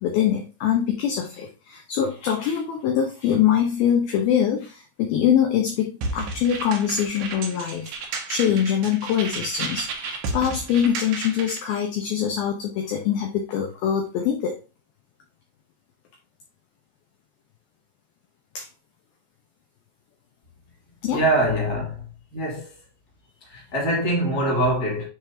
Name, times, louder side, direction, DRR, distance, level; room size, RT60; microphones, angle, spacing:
voice 1, 0.0-7.9 8.3-14.6 18.6-18.7 21.0-21.2, left 9 dB, 80° left, 2.1 m, -23 dB
sound 1, 6.0-11.6, right 3 dB, 80° right, 1.9 m, -32 dB
voice 2, 21.1-22.8 23.4-25.1, right 1 dB, 30° left, 1.9 m, -24 dB
9.3 x 3.6 x 2.8 m
omnidirectional pair, 5.4 m